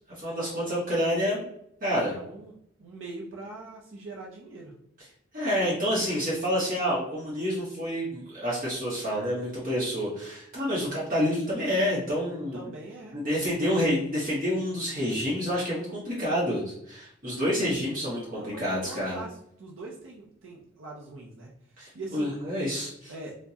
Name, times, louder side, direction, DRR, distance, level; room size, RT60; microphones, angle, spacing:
voice 1, 0.1-1.5 1.8-2.1 5.3-12.7 13.1-19.2 21.8-23.1, equal, 45° right, -7 dB, 1.1 m, -28 dB
voice 2, 2.1-4.7 12.5-13.7 15.0-15.2 18.3-22.4 23.1-23.4, right 2 dB, 85° right, -2 dB, 0.6 m, -43 dB
4.4 x 2.2 x 2.8 m, 0.72 s
head